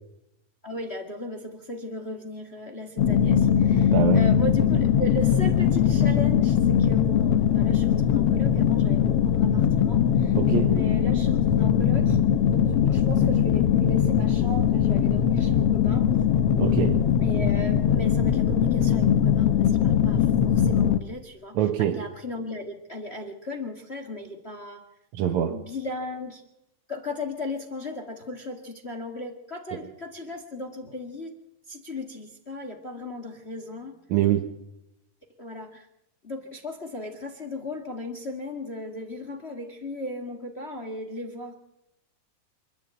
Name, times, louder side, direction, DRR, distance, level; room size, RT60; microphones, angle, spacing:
voice 1, 0.6-10.4 10.7-12.2 12.5-16.1 17.2-24.9 25.5-26.4 26.9-31.3 31.7-34.0 35.4-35.9 36.2-41.5, left 2 dB, 25° left, 6 dB, 1.4 m, -36 dB
sound 1, 3.0-21.0, left 9 dB, 65° left, 1.5 m, -21 dB
voice 2, 3.9-4.3 10.3-10.8 16.6-17.0 21.5-22.0 25.1-25.6 29.7-29.9 34.1-34.5, right 10 dB, 65° right, 4 dB, 2.4 m, -24 dB
26.5 x 11.5 x 9.0 m, 0.86 s
omnidirectional pair, 3.9 m